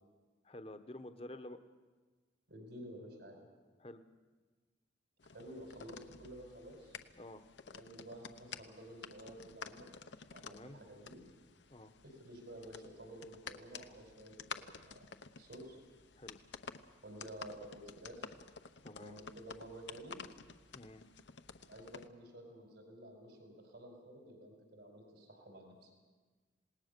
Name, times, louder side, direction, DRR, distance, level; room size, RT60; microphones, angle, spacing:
voice 1, 0.4-1.6 3.8-4.0 7.1-7.4 10.4-10.8 11.7-11.9 16.2-16.4 18.8-19.2 20.7-21.0, left 1 dB, 30° left, 9 dB, 1.0 m, -50 dB
voice 2, 2.5-3.4 5.3-7.0 7.7-9.9 10.3-11.2 12.0-15.0 15.4-15.8 17.0-18.4 19.0-20.2 21.7-25.9, right 1 dB, 70° right, 2 dB, 4.8 m, -51 dB
sound 1, 5.2-22.1, left 5 dB, 75° left, 0.9 m, -52 dB
27.0 x 19.0 x 6.8 m, 1.4 s
head